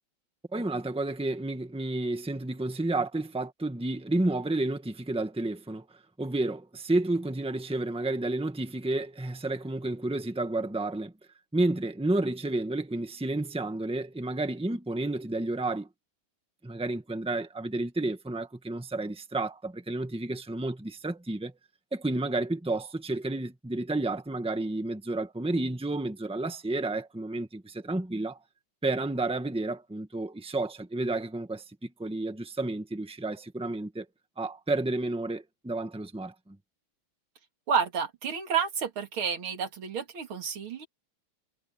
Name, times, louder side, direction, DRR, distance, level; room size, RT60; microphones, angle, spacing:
voice 1, 0.5-5.8 6.2-11.1 11.5-15.9 16.6-21.5 21.9-28.4 28.8-31.6 32.0-34.0 34.4-36.6, right 2 dB, 5° right, 1.4 m, -31 dB
voice 2, 37.7-40.9, right 7 dB, 85° right, 3.1 m, -30 dB
omnidirectional pair, 2.2 m